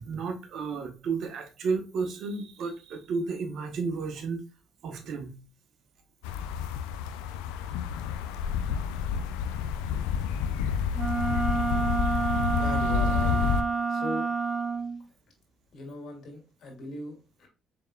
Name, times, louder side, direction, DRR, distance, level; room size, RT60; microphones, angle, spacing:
voice 1, 0.0-4.4 4.8-5.3, right 4 dB, 65° right, 0.8 m, -32 dB
sound 1, 6.2-13.6, left 7 dB, 85° left, 0.3 m, -29 dB
Wind instrument woodwind instrument, 10.9-15.0, right 4 dB, 20° right, 0.9 m, -28 dB
voice 2, 12.5-13.4 13.9-14.3 15.7-17.5, left 1 dB, 60° left, 1.9 m, -39 dB
4.6 x 3.4 x 2.2 m
supercardioid pair, 60°, 0 cm